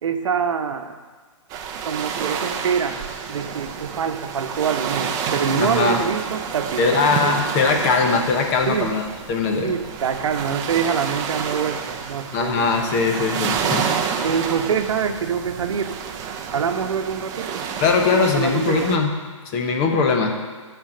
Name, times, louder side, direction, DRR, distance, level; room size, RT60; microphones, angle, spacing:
voice 1, 0.0-1.0 1.8-3.0 3.3-7.4 8.7-8.9 9.6-12.7 14.2-16.0 16.5-17.7 18.1-18.9, right 7 dB, 65° right, 6 dB, 1.0 m, -25 dB
sound 1, 1.5-19.0, right 7 dB, 20° right, 0.7 m, -29 dB
voice 2, 5.6-6.0 6.8-9.0 9.3-9.7 12.3-14.0 17.8-19.2 19.5-20.4, left 4 dB, 30° left, 3 dB, 1.1 m, -20 dB
10.5 x 4.5 x 7.9 m, 1.5 s
hypercardioid pair, 145°, 17 cm